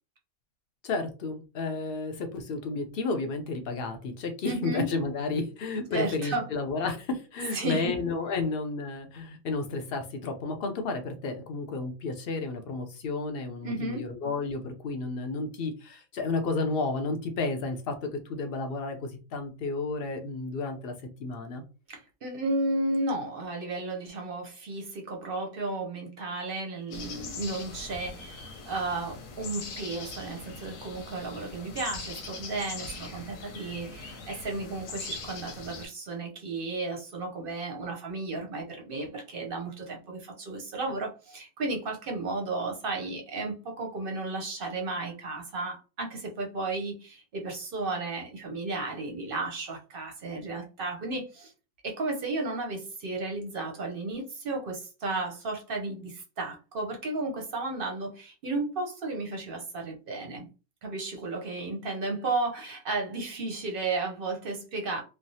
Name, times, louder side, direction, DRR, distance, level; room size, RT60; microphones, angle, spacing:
voice 1, 0.8-20.9 21.2-21.6, left 3 dB, 55° left, 0.7 m, -32 dB
voice 2, 4.5-4.9 5.9-6.5 7.5-7.9 13.6-14.0 21.9-51.5 51.8-60.5 60.8-65.0, right 2 dB, 55° right, 0.7 m, -33 dB
sound 1, 26.9-35.9, left 4 dB, 85° left, 1.0 m, -41 dB
3.2 x 2.0 x 2.6 m
omnidirectional pair, 1.4 m